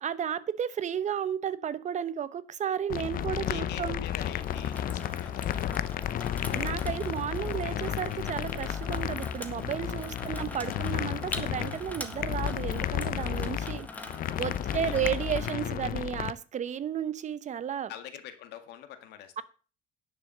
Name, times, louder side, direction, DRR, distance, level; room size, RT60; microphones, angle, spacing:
voice 1, 0.0-4.0 6.5-13.9 14.4-17.9, right 9 dB, 45° right, 16 dB, 0.9 m, -33 dB
sound 1, 2.9-16.3, left 10 dB, 55° left, 0.8 m, -32 dB
voice 2, 3.4-6.4 10.0-10.3 13.9-15.5 17.9-19.4, left 10 dB, 85° left, 9 dB, 1.9 m, -46 dB
Water tap faucet / Sink (filling or washing), 4.4-15.5, left 1 dB, 10° left, 1.6 m, -44 dB
sound 2, 7.1-8.0 8.3-11.1 11.4-12.6 12.9-13.3, right 2 dB, 60° right, 2.6 m, -48 dB
10.5 x 6.6 x 6.8 m, 0.38 s
cardioid pair, 110°, 17 cm